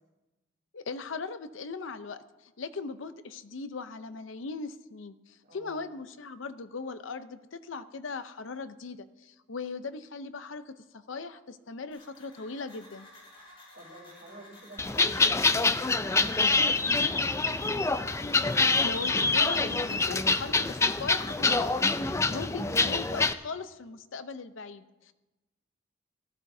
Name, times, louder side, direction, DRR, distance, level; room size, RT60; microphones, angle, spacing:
voice 1, 0.7-13.1 18.7-21.7 22.1-25.1, left 4 dB, 75° left, 11 dB, 0.7 m, -39 dB
voice 2, 5.5-5.9 13.7-15.7 16.0-18.0, right 2 dB, 65° right, -3 dB, 3.9 m, -49 dB
sound 1, 11.9-22.5, left 1 dB, 30° left, 5.7 m, -53 dB
Guinea fowl, 14.8-23.3, left 3 dB, 15° left, 0.4 m, -26 dB
18.5 x 14.0 x 2.7 m, 1.1 s
head